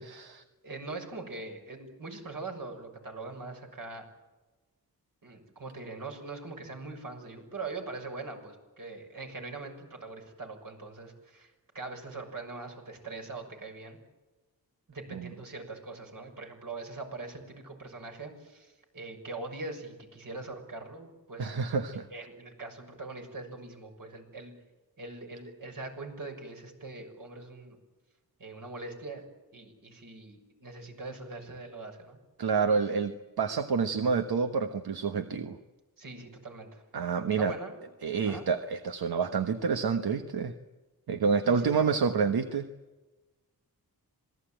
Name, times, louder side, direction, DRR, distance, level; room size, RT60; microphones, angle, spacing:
voice 1, 0.0-0.4 15.1-15.3 21.4-22.1 32.4-35.6 36.9-37.6 38.0-40.5 41.1-42.7, right 5 dB, 80° right, 8 dB, 1.3 m, -28 dB
voice 2, 0.6-4.1 5.2-14.0 14.9-21.5 22.1-24.5 25.0-27.8 28.4-29.3 29.5-32.2 36.0-36.8 37.4-37.8 38.2-38.4 41.5-42.0, right 3 dB, 60° right, 3 dB, 6.5 m, -42 dB
27.0 x 19.5 x 9.1 m, 1.2 s
wide cardioid pair, 90°, 37 cm